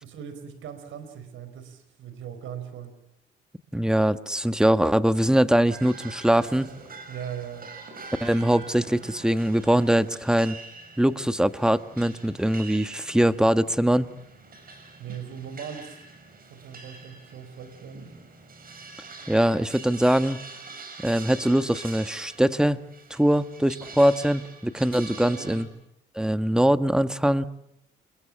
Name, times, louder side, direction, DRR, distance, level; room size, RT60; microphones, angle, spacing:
voice 1, 0.0-2.9 7.1-7.7 15.0-16.0 16.5-18.2 25.2-25.7, right 8 dB, 80° right, 11 dB, 4.5 m, -39 dB
voice 2, 3.7-6.7 8.2-10.6 11.0-14.1 19.3-20.4 21.0-22.8 23.1-25.7 26.1-27.5, right 1 dB, 5° right, 11 dB, 1.3 m, -22 dB
sound 1, 5.7-25.6, right 4 dB, 45° right, 6.4 m, -45 dB
28.5 x 22.0 x 7.4 m, 0.81 s
cardioid pair, 90°, 20 cm